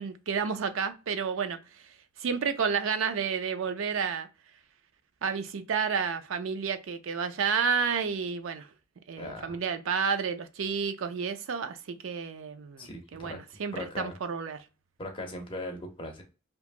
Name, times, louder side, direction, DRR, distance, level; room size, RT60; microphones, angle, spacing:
voice 1, 0.0-1.6 2.2-4.3 5.2-8.7 9.1-14.6, right 6 dB, 70° right, 0.4 m, -30 dB
voice 2, 9.2-9.6 12.8-13.4 13.7-14.1 15.0-16.2, left 1 dB, 25° left, 0.7 m, -39 dB
2.9 x 2.2 x 2.4 m
head